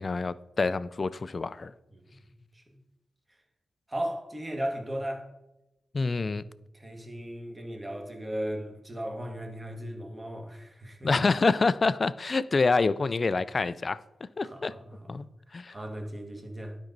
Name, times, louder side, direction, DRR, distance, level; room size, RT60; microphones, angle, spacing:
voice 1, 0.0-1.7 5.9-6.4 11.0-14.0 14.4-14.7 15.1-15.3 15.5-15.7, left 3 dB, 35° left, 0.3 m, -26 dB
voice 2, 1.9-2.6 3.9-5.3 6.7-11.1 14.4-16.8, equal, 20° right, 1.4 m, -37 dB
12.0 x 5.4 x 3.9 m
wide cardioid pair, 125°, 0 cm